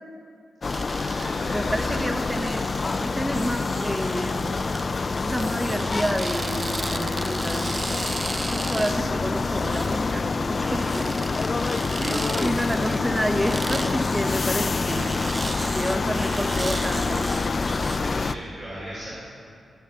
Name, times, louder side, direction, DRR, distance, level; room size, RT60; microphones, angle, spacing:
sound 1, 0.6-18.4, left 4 dB, 45° left, 0.4 m, -27 dB
sound 2, 0.7-18.0, right 2 dB, 30° right, 0.4 m, -36 dB
voice 1, 0.9-2.0 12.2-12.6 15.9-16.0 17.9-19.1, right 1 dB, 50° right, -8 dB, 3.3 m, -38 dB
voice 2, 1.5-4.9 5.2-8.1 8.5-11.1 12.0-15.1 15.7-17.5, equal, 10° right, 5 dB, 0.9 m, -29 dB
14.5 x 5.7 x 6.8 m, 2.4 s
cardioid pair, 60°, 0 cm